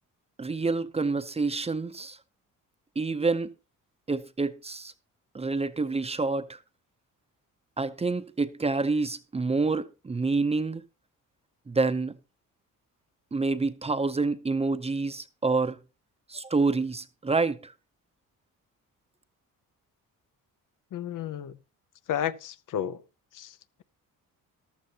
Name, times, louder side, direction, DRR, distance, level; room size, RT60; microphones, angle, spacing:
voice 1, 0.4-2.2 3.0-3.5 4.1-4.9 5.3-6.6 7.8-10.8 11.7-12.1 13.3-15.8 16.3-17.7, right 3 dB, 20° right, 0.7 m, -27 dB
voice 2, 20.9-21.6 22.1-23.0 23.3-23.8, left 10 dB, 65° left, 0.7 m, -32 dB
14.5 x 13.0 x 2.9 m
cardioid pair, 135°, 34 cm